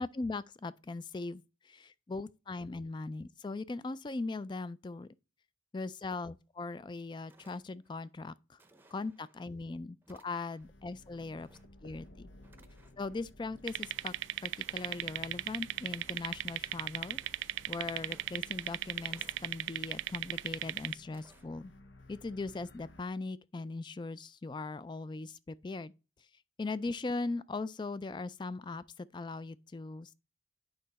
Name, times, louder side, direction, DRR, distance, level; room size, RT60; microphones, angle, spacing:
voice 1, 0.0-5.1 5.7-8.6 8.9-11.5 11.8-12.3 13.0-14.1 14.4-21.7 22.1-25.9 26.6-30.1, left 3 dB, 25° left, 0.3 m, -39 dB
sound 1, 6.8-6.9 7.2-8.1 8.6-9.4 10.0-10.8 11.3-12.1 12.4-13.2 13.5-14.1 14.6-15.4 15.8-16.6 17.0-17.6 17.9-18.6 18.9-19.8 20.2-20.7 21.1-21.5, right 2 dB, 10° right, 0.7 m, -64 dB
sound 2, 10.6-23.0, left 1 dB, 85° left, 0.9 m, -57 dB
sound 3, 13.7-20.9, right 13 dB, 85° right, 0.3 m, -37 dB
8.8 x 5.5 x 4.1 m
head